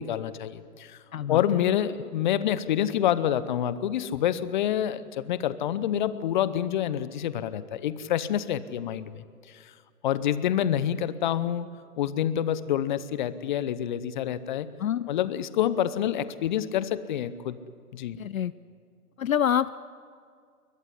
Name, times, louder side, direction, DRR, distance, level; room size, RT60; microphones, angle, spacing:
voice 1, 0.0-1.0 1.3-9.7 10.0-11.7 12.0-14.7 15.1-17.6 17.9-18.2, left 10 dB, 30° left, 16 dB, 0.9 m, -27 dB
voice 2, 18.2-18.5 19.2-19.8, left 9 dB, 60° left, 18 dB, 0.6 m, -26 dB
22.0 x 21.5 x 9.9 m, 2.2 s
figure-of-eight pair, 130°, 46 cm